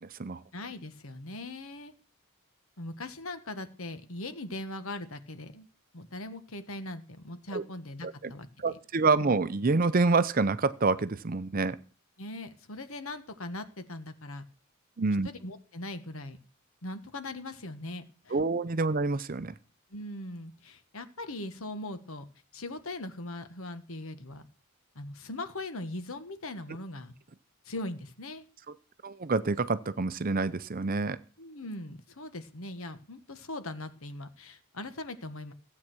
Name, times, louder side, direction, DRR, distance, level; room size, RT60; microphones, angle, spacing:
voice 1, 0.0-0.4 7.5-7.6 8.0-8.3 8.6-11.8 15.0-15.3 18.3-19.5 29.0-31.2, right 3 dB, 40° right, 14 dB, 0.6 m, -27 dB
voice 2, 0.5-1.9 2.8-5.7 5.9-8.8 12.2-14.5 15.2-16.4 16.8-18.4 19.9-22.3 22.5-24.5 24.9-27.1 27.6-28.4 31.4-35.5, left 2 dB, 65° left, 10 dB, 1.4 m, -40 dB
15.0 x 8.5 x 6.2 m, 0.38 s
head